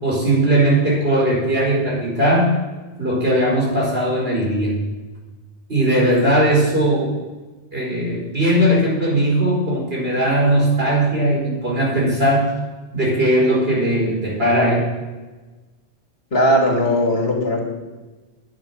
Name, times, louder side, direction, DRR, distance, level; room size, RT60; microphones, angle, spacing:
voice 1, 0.0-2.6 3.0-4.8 5.7-7.1 7.7-12.5 12.9-14.8, right 1 dB, 70° right, -3 dB, 5.0 m, -18 dB
voice 2, 16.3-17.6, equal, 70° left, 0 dB, 2.7 m, -18 dB
10.5 x 9.3 x 7.2 m, 1.2 s
omnidirectional pair, 1.1 m